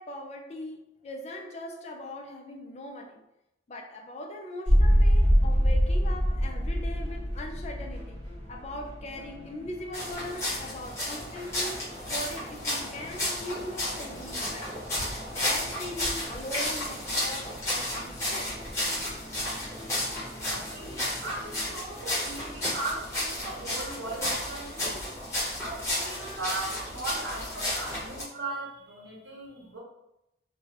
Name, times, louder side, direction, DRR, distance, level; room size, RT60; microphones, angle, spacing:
voice 1, 0.0-3.2 3.7-8.2 8.5-14.8 15.1-18.6, left 1 dB, 35° left, 2 dB, 0.4 m, -40 dB
sound 1, 4.7-21.7, equal, 30° right, 1.0 m, -30 dB
sound 2, 9.9-28.2, left 1 dB, 15° left, 1.0 m, -33 dB
voice 2, 20.3-25.1 25.6-29.8, right 2 dB, 70° right, -2 dB, 0.8 m, -38 dB
3.1 x 2.2 x 2.9 m, 0.85 s
head